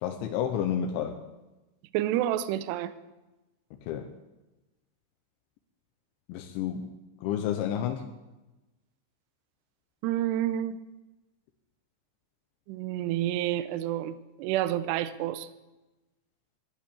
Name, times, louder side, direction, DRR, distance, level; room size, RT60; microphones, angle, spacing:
voice 1, 0.0-1.2 3.9-4.1 6.3-6.9 7.2-8.1, left 9 dB, 80° left, 4 dB, 3.0 m, -30 dB
voice 2, 1.9-2.9 10.0-10.9 12.7-15.5, right 12 dB, 90° right, 13 dB, 2.4 m, -29 dB
13.5 x 11.0 x 8.4 m, 1.1 s
omnidirectional pair, 5.7 m